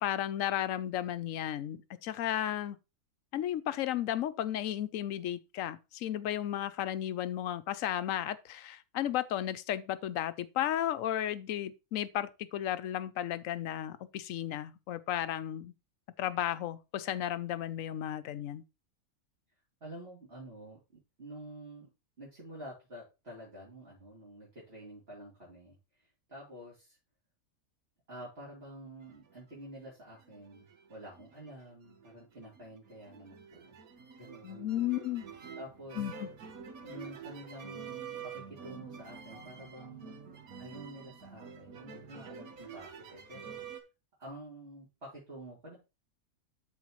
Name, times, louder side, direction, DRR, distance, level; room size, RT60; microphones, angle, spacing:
voice 1, 0.0-2.8 3.3-15.7 16.2-18.6 34.4-35.2 36.0-36.3, left 11 dB, 70° left, 1.0 m, -34 dB
voice 2, 19.8-21.9 22.2-27.0 28.1-33.8 34.2-34.8 35.6-36.0 36.8-40.2 40.6-43.8 44.2-45.8, right 1 dB, 45° right, 3.4 m, -49 dB
sound 1, 29.1-29.9 30.3-43.8, right 6 dB, 80° right, 1.6 m, -48 dB
12.5 x 4.6 x 3.1 m
omnidirectional pair, 1.5 m